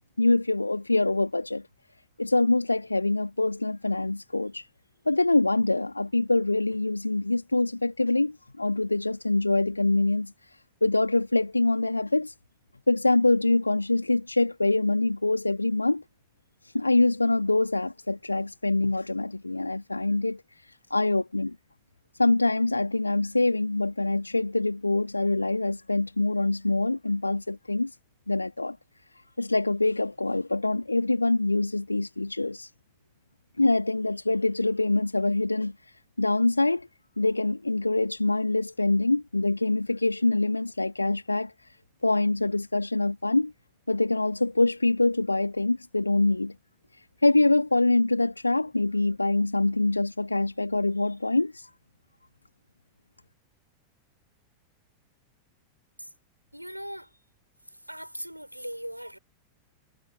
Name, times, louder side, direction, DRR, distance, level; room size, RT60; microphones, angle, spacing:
voice 1, 0.2-1.6 2.2-4.7 5.1-10.3 10.8-12.3 12.9-16.0 16.7-20.4 20.9-21.6 22.2-27.9 28.3-28.8 29.4-32.7 33.6-35.7 36.2-36.9 37.2-41.5 42.0-43.5 43.9-46.5 47.2-51.7, left 2 dB, 85° left, 2.1 m, -24 dB
voice 2, 56.5-57.1 57.9-59.2, equal, 90° right, 5.4 m, -39 dB
figure-of-eight pair, 90°, 0 cm